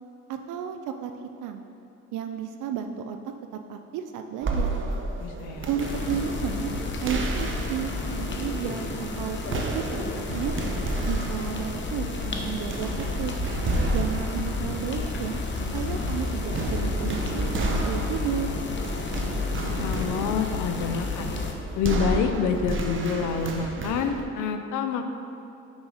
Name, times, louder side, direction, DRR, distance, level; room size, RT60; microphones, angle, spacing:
voice 1, 0.3-1.1 1.4-1.6 2.1-4.8 5.7-6.7 7.0-9.9 10.2-10.5 11.1-12.9 13.2-13.4 13.9-15.4 15.7-18.5, right 8 dB, 85° right, 6 dB, 0.5 m, -32 dB
sound 1, 4.4-24.2, right 2 dB, 40° right, 0.8 m, -32 dB
voice 2, 5.2-5.7 13.6-14.1 19.8-21.3 21.8-25.1, left 6 dB, 90° left, 7 dB, 0.6 m, -28 dB
sound 2, 5.8-21.5, left 3 dB, 40° left, 0.9 m, -31 dB
6.2 x 5.5 x 4.8 m, 2.6 s
cardioid pair, 90°, 30 cm